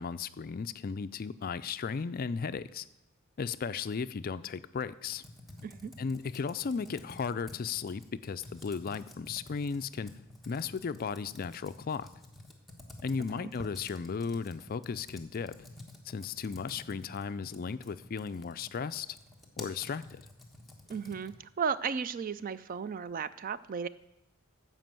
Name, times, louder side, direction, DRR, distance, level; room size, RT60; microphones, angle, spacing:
voice 1, 0.0-2.8 3.4-5.2 6.0-10.1 10.5-12.1 13.0-15.7 16.1-19.1 19.6-20.2, left 5 dB, 40° left, 14 dB, 0.4 m, -35 dB
Computer keyboard, 5.0-21.5, left 1 dB, ahead, 1.2 m, -51 dB
voice 2, 5.6-5.9 13.4-13.5 20.9-23.9, right 6 dB, 40° right, 16 dB, 0.4 m, -35 dB
13.0 x 5.2 x 7.5 m, 0.89 s
head